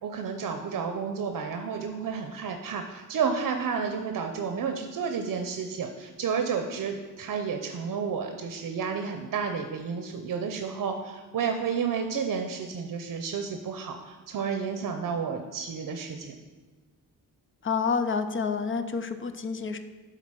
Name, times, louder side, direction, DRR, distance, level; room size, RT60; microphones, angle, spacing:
voice 1, 0.0-16.3, right 6 dB, 70° right, 5 dB, 0.7 m, -31 dB
voice 2, 17.6-19.8, left 5 dB, 35° left, 9 dB, 0.6 m, -28 dB
10.5 x 3.9 x 6.2 m, 1.4 s
wide cardioid pair, 145°, 34 cm